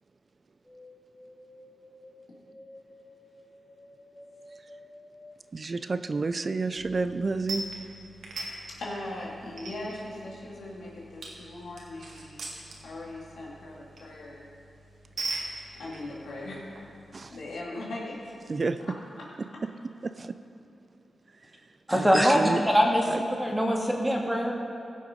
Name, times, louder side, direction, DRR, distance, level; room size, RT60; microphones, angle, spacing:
sound 1, 0.6-10.1 10.3-11.2 11.5-12.5 12.8-12.9, left 1 dB, 10° left, 2.3 m, -54 dB
voice 1, 5.5-7.7 17.1-17.4 18.5-18.9 19.4-19.5 20.0-20.4 21.3-22.6 23.1-23.2, right 3 dB, 50° right, 11 dB, 0.5 m, -31 dB
sound 2, 6.7-17.5, right 2 dB, 75° right, 1.8 m, -42 dB
voice 2, 8.7-12.5 12.8-14.5 15.7-16.7 17.3-18.3 19.2-19.3, left 1 dB, 85° left, -4 dB, 2.6 m, -39 dB
voice 3, 21.9-22.4 22.7-24.5, equal, 10° right, -1 dB, 2.1 m, -23 dB
16.0 x 6.6 x 5.2 m, 2.8 s
cardioid pair, 55°, 0 cm